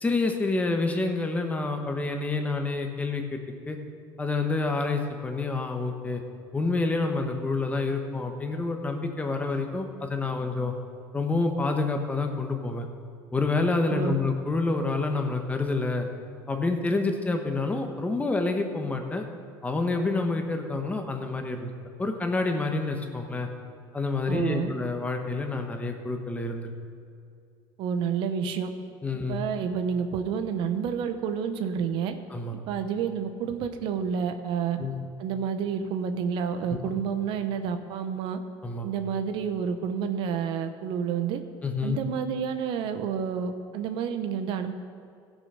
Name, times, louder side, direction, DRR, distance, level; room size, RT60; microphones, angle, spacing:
voice 1, 0.0-3.4 3.7-3.8 4.2-6.2 6.5-10.7 11.1-12.9 13.3-16.1 16.5-19.3 19.6-21.7 22.0-23.5 23.9-26.7 29.0-29.4 32.3-32.6 34.8-35.0 36.7-36.8 38.6-38.9 41.6-42.0, left 3 dB, 15° left, 4 dB, 1.1 m, -28 dB
voice 2, 24.3-24.7 27.8-28.7 29.3-32.1 32.7-34.8 35.2-38.4 38.8-41.4 41.8-44.7, right 7 dB, 60° right, 8 dB, 0.9 m, -29 dB
16.0 x 6.3 x 5.5 m, 2.4 s
cardioid pair, 130°, 9 cm